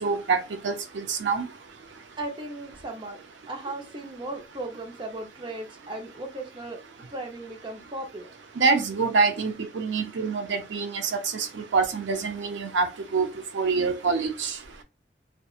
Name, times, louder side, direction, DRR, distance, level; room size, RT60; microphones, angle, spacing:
voice 1, 0.0-1.5 8.6-12.9 13.1-13.3 13.5-14.6, right 4 dB, 85° right, 0.5 m, -26 dB
voice 2, 2.2-3.2 3.5-6.8 7.1-8.3, right 2 dB, 30° right, 0.6 m, -36 dB
2.8 x 2.2 x 2.3 m
head